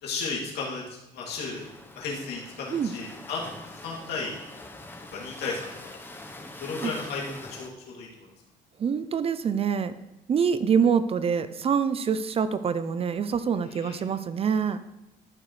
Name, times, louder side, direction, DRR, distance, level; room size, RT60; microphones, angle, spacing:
voice 1, 0.0-1.7 1.9-3.5 3.8-4.3 5.1-6.0 6.6-8.3 13.7-14.0, left 4 dB, 75° left, -3 dB, 2.7 m, -34 dB
sound 1, 1.3-7.7, left 2 dB, 10° left, 0.9 m, -44 dB
voice 2, 8.8-9.9 10.3-14.8, right 6 dB, 35° right, 13 dB, 0.5 m, -25 dB
13.0 x 5.9 x 3.2 m, 0.94 s
cardioid pair, 110°, 17 cm